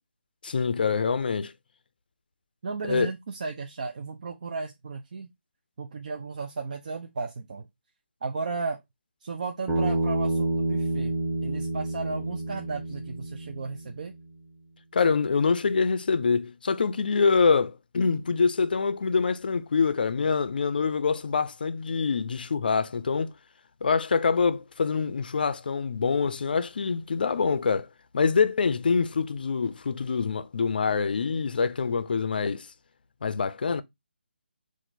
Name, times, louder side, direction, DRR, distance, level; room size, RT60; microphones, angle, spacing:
voice 1, 0.4-1.5 2.8-3.1 14.9-23.3 23.8-27.9 28.1-32.7 33.2-33.8, left 5 dB, 55° left, 0.4 m, -25 dB
voice 2, 2.6-5.3 5.8-7.7 8.2-8.8 9.2-11.1 11.4-14.1, right 4 dB, 45° right, 0.5 m, -34 dB
Bass guitar, 9.7-13.9, right 2 dB, 10° right, 1.4 m, -28 dB
4.4 x 2.5 x 3.9 m
figure-of-eight pair, 160°, 6 cm